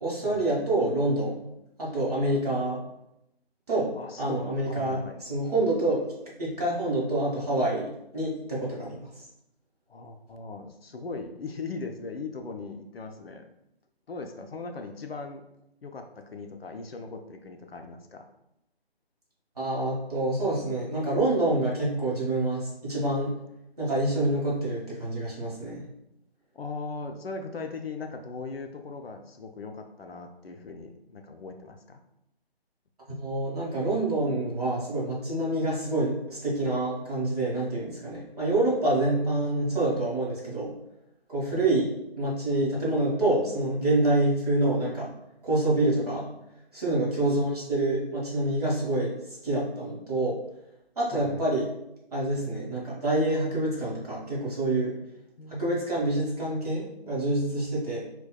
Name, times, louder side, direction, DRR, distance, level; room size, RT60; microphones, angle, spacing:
voice 1, 0.0-1.4 1.8-2.8 3.7-3.9 4.2-5.0 5.3-6.1 6.4-9.1 19.6-23.4 23.8-25.8 33.1-40.7 41.3-45.1 45.4-46.3 46.7-50.4 51.0-51.7 52.1-55.0 55.5-58.0, right 2 dB, 35° right, -6 dB, 1.1 m, -27 dB
voice 2, 4.0-5.2 9.9-13.5 14.1-15.4 15.8-18.3 26.5-32.0 41.5-41.6 47.1-47.7 51.1-51.6 55.4-55.9, left 4 dB, 65° left, 5 dB, 0.5 m, -39 dB
4.0 x 2.2 x 2.2 m, 0.84 s
figure-of-eight pair, 150°, 32 cm